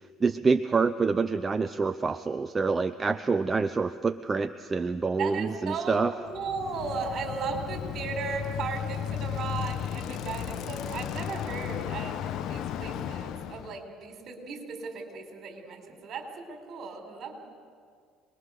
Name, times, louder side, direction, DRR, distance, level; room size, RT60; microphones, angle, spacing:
voice 1, 0.2-6.1, right 4 dB, 25° right, 10 dB, 0.6 m, -26 dB
voice 2, 5.2-17.4, right 4 dB, 50° right, 4 dB, 4.4 m, -36 dB
Bicycle, 6.3-13.8, left 9 dB, 65° left, 1.1 m, -35 dB
27.5 x 21.0 x 6.6 m, 2.1 s
supercardioid pair, 95°, 0 cm